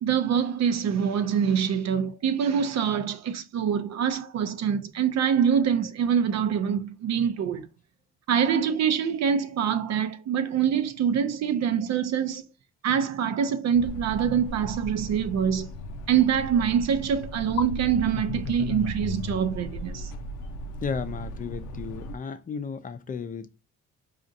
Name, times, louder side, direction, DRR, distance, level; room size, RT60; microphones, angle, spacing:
voice 1, 0.0-7.7 8.3-12.4 12.8-15.7 16.1-20.1, right 8 dB, 60° right, 0.6 m, -25 dB
sound 1, 13.7-22.2, left 2 dB, 85° left, 0.5 m, -36 dB
voice 2, 20.8-23.5, left 5 dB, 25° left, 0.5 m, -34 dB
4.8 x 2.5 x 2.7 m
cardioid pair, 90°, 30 cm